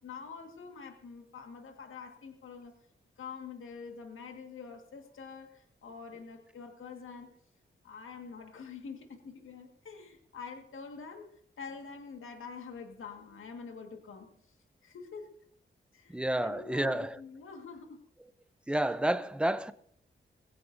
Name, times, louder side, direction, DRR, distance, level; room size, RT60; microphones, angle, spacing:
voice 1, 0.0-2.7 3.2-7.3 7.8-11.3 11.6-14.3 14.8-15.3 15.9-18.0, left 5 dB, 85° left, 1.7 m, -46 dB
voice 2, 16.1-17.2 18.7-19.7, right 1 dB, 5° right, 0.7 m, -30 dB
20.5 x 16.0 x 2.7 m
cardioid pair, 65°, 20 cm